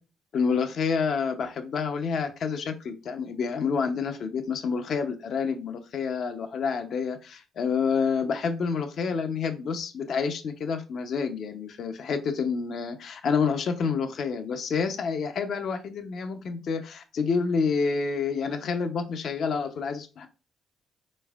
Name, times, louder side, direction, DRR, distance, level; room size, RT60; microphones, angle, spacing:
voice 1, 0.3-20.3, left 5 dB, 65° left, 7 dB, 0.7 m, -28 dB
5.3 x 4.2 x 2.4 m, 0.31 s
cardioid pair, 90°, 0 cm